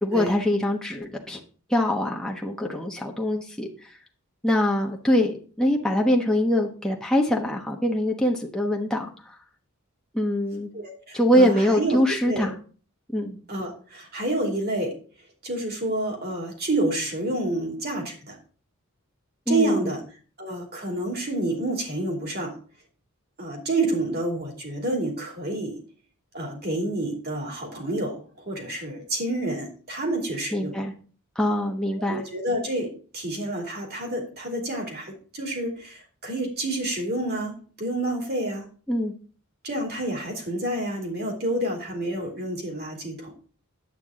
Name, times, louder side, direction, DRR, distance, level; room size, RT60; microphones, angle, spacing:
voice 1, 0.0-1.4 1.7-3.7 4.4-9.1 10.1-10.7 11.1-12.6 13.1-13.4 19.5-19.9 30.5-30.9 31.4-32.2 38.9-39.1, equal, 5° left, -1 dB, 1.0 m, -23 dB
voice 2, 10.7-12.0 12.2-12.5 13.5-15.0 15.4-18.4 19.5-20.0 20.4-22.6 23.4-25.8 26.3-28.2 28.5-30.7 32.1-38.7 39.6-43.3, right 1 dB, 45° right, 1 dB, 2.7 m, -29 dB
9.3 x 8.4 x 3.7 m, 0.41 s
head